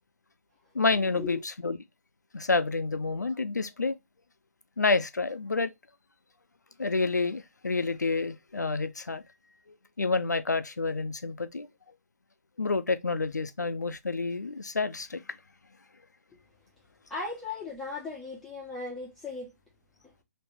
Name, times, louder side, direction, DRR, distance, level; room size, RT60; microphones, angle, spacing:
voice 1, 0.7-1.8 2.3-4.0 4.8-5.7 6.8-9.2 10.0-11.7 12.6-15.4, left 3 dB, 90° left, 0.5 m, -29 dB
voice 2, 17.1-19.5, left 3 dB, 5° left, 1.0 m, -37 dB
3.1 x 2.9 x 3.3 m
figure-of-eight pair, 135°, 9 cm